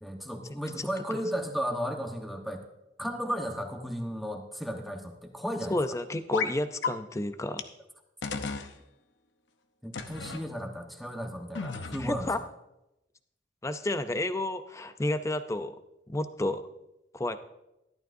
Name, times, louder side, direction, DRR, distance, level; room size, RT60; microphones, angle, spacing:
voice 1, 0.0-2.6 3.0-5.8 9.8-12.3, equal, ahead, 3 dB, 1.1 m, -34 dB
voice 2, 0.8-1.2 5.7-7.6 12.0-12.4 13.6-15.8 16.1-16.6 17.1-17.4, left 1 dB, 15° left, 10 dB, 0.5 m, -31 dB
sound 1, 6.3-6.5 6.8-6.9 7.6-7.7 8.2-8.7 9.9-10.4 11.6-12.3, left 5 dB, 75° left, 0.7 m, -33 dB
14.0 x 11.5 x 2.6 m, 0.90 s
head